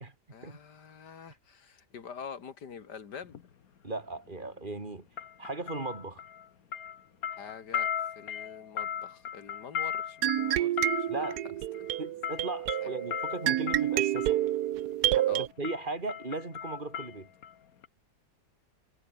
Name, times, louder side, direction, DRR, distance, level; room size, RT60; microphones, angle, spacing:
voice 1, 0.3-3.4 7.3-7.9 8.2-11.2 12.8-13.1 15.3-15.5, left 6 dB, 90° left, 2.5 m, -46 dB
sound 1, 3.2-3.4 5.2-6.5 6.7-14.4 15.2-15.4 15.6-17.5 17.8-17.9, left 9 dB, 65° left, 1.5 m, -37 dB
voice 2, 3.8-5.1 5.4-6.2 11.1-11.6 12.0-14.4 15.2-17.3, right 2 dB, 30° right, 2.9 m, -37 dB
sound 2, 10.2-15.5, right 13 dB, 75° right, 1.2 m, -29 dB
omnidirectional pair, 1.7 m